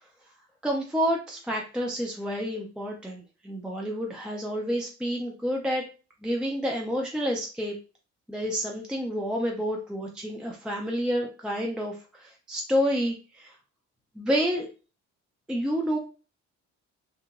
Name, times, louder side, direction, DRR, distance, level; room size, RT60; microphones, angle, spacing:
voice 1, 0.6-5.8 6.2-7.7 8.3-13.6 14.2-14.7 15.5-16.0, equal, 5° right, 0 dB, 0.4 m, -29 dB
2.9 x 2.5 x 2.4 m, 0.35 s
cardioid pair, 90°, 30 cm